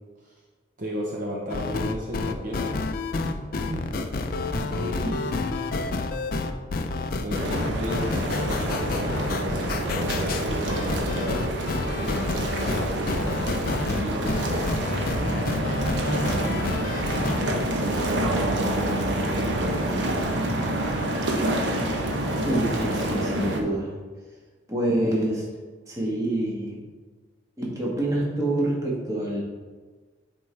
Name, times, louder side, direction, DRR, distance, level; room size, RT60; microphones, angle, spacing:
voice 1, 0.8-2.7 3.2-3.4 3.7-3.9 4.5-5.3 7.2-11.6 12.0-14.5 15.9-16.8 17.4-20.2, equal, 45° right, -3 dB, 0.8 m, -34 dB
sound 1, 1.5-17.4, left 3 dB, 50° left, 0.4 m, -29 dB
sound 2, 7.3-23.6, right 1 dB, 80° right, 0.9 m, -27 dB
voice 2, 22.4-23.9 24.7-25.5 25.9-26.8 27.6-29.4, right 1 dB, 15° right, -4 dB, 1.4 m, -26 dB
9.0 x 4.4 x 3.3 m, 1.4 s
head